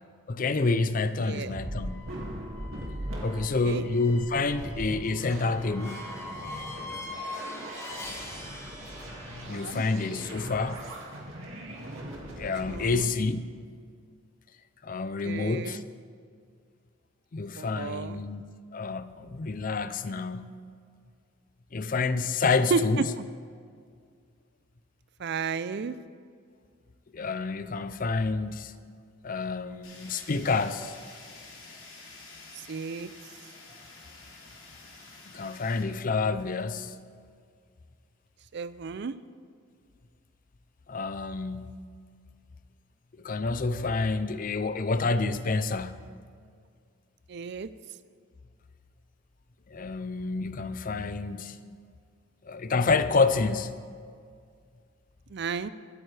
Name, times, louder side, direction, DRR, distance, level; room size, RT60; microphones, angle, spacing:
voice 1, 0.3-2.2 3.2-6.1 9.3-10.8 11.4-11.5 12.3-13.4 14.8-15.8 17.3-18.4 18.7-20.7 21.7-23.1 27.1-28.7 29.2-30.9 35.3-37.0 40.9-41.9 43.2-46.1 49.7-51.6 52.4-53.7, left 3 dB, 40° left, 0.5 m, -28 dB
voice 2, 1.2-1.5 3.4-3.8 9.5-9.8 12.7-13.1 15.2-15.8 17.6-18.2 22.7-22.8 25.2-26.0 32.6-33.1 38.5-39.1 47.3-47.7 55.3-55.7, right 5 dB, 55° right, 0.4 m, -33 dB
sound 1, 1.3-12.9, right 1 dB, 80° right, 2.2 m, -40 dB
sound 2, 1.8-9.5, left 2 dB, 15° left, 2.3 m, -43 dB
Fire, 29.8-35.8, left 3 dB, 85° left, 2.7 m, -49 dB
22.5 x 8.9 x 3.3 m
head